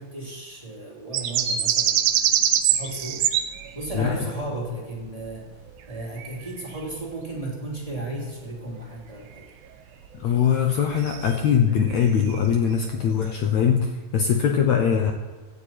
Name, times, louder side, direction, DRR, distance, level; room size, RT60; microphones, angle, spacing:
voice 1, 0.0-2.0 2.6-3.3 3.7-5.5 5.9-9.5, right 1 dB, 10° right, -4 dB, 2.8 m, -34 dB
sound 1, 1.1-4.1 5.9-6.3 6.8-6.9 11.0-11.4 11.7-12.0 12.3-12.4, right 10 dB, 80° right, 2.7 m, -23 dB
voice 2, 10.2-15.1, left 7 dB, 70° left, 4 dB, 1.7 m, -22 dB
16.0 x 11.5 x 4.6 m, 1.4 s
omnidirectional pair, 4.2 m